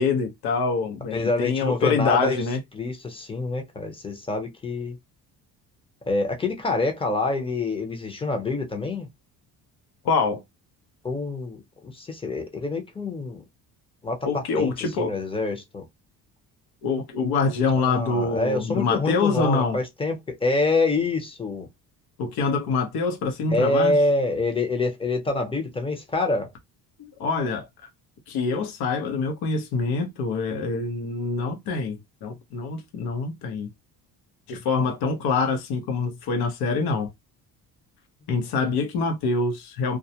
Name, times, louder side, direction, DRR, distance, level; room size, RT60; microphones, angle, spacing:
voice 1, 0.0-2.6 10.0-10.4 14.2-15.1 16.8-19.8 22.2-23.9 27.0-27.7 28.3-33.7 34.5-37.1 38.3-40.0, left 4 dB, 80° left, 0.9 m, -25 dB
voice 2, 1.1-2.4 2.7-5.0 6.1-9.1 11.0-13.4 14.0-15.8 17.7-21.7 23.5-26.5, left 2 dB, 15° left, 0.7 m, -26 dB
2.3 x 2.1 x 2.8 m
cardioid pair, 115°, 38 cm